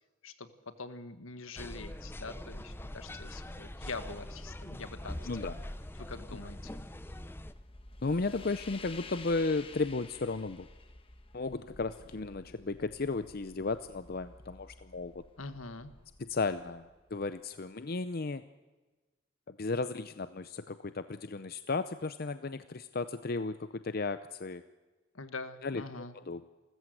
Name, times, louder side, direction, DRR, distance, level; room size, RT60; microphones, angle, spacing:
voice 1, 0.8-5.5 5.9-6.7 15.4-15.9 25.1-26.2, left 3 dB, 75° left, 10 dB, 1.6 m, -44 dB
sound 1, 1.6-7.5, left 1 dB, 10° left, 0.7 m, -43 dB
sound 2, 4.4-17.5, left 3 dB, 25° left, 1.3 m, -53 dB
voice 2, 8.0-10.7 11.3-15.2 16.2-16.9 17.1-18.4 19.5-24.6 25.6-25.8 26.3-26.4, left 3 dB, 45° left, 12 dB, 0.6 m, -34 dB
28.5 x 14.5 x 7.9 m, 1.2 s
head